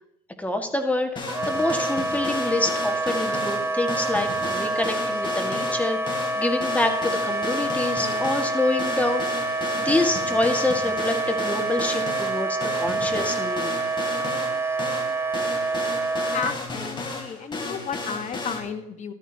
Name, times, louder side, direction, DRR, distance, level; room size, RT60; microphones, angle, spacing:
voice 1, 0.4-13.8 17.1-17.2, left 2 dB, 10° left, 4 dB, 1.7 m, -27 dB
sound 1, 1.2-18.6, left 3 dB, 25° left, 2.8 m, -34 dB
Wind instrument woodwind instrument, 1.3-16.6, right 2 dB, 15° right, 0.8 m, -27 dB
voice 2, 16.3-19.1, left 7 dB, 45° left, 7 dB, 1.4 m, -33 dB
14.0 x 12.5 x 2.9 m, 0.81 s
cardioid pair, 110°, 17 cm